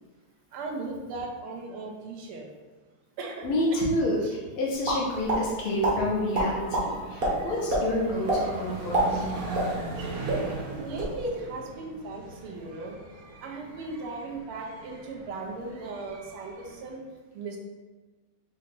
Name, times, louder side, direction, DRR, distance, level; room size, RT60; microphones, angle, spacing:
voice 1, 0.5-2.5 3.2-3.9 4.2-4.3 9.1-9.3 10.1-13.0 13.4-17.0 17.3-17.6, right 3 dB, 85° right, 0 dB, 1.6 m, -37 dB
voice 2, 3.4-9.3, left 1 dB, 80° left, -3 dB, 1.9 m, -29 dB
sound 1, 4.8-5.4 5.8-5.9 6.3-6.8 7.2-7.3 7.7-7.8 8.3-8.4 8.8-10.0 10.3-10.4 10.8-11.1, right 1 dB, 40° right, 0.9 m, -25 dB
sound 2, 5.9-16.9, right 3 dB, 65° right, 0.9 m, -40 dB
5.1 x 2.8 x 3.7 m, 1.2 s
omnidirectional pair, 2.4 m